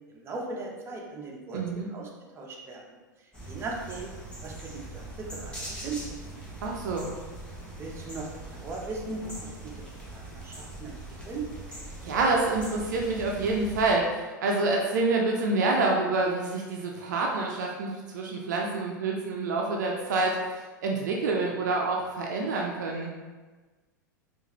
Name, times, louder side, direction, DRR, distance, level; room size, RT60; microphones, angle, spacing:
voice 1, 0.1-2.1 2.3-2.8 3.5-4.1 4.4-6.0 7.8-11.0 11.2-11.4, right 3 dB, 25° right, -1 dB, 0.8 m, -38 dB
voice 2, 1.5-1.9 6.6-7.1 12.0-23.2, right 3 dB, 60° right, 0 dB, 0.5 m, -27 dB
sound 1, 3.3-13.9, right 2 dB, 10° left, 1.3 m, -41 dB
4.7 x 2.5 x 3.0 m, 1.3 s
figure-of-eight pair, 90°, 11 cm